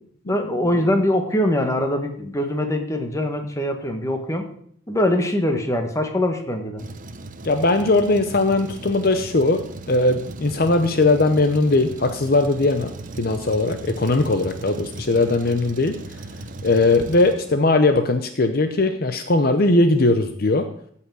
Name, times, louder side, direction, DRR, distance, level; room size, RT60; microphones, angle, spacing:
voice 1, 0.3-4.4 4.9-6.8, left 1 dB, 15° left, 5 dB, 1.4 m, -23 dB
Truck, 6.8-18.0, right 2 dB, 40° right, 0.7 m, -37 dB
voice 2, 7.4-9.6 9.9-15.9 16.6-20.6, left 2 dB, 50° left, 7 dB, 0.7 m, -19 dB
15.0 x 5.8 x 6.2 m, 0.63 s
head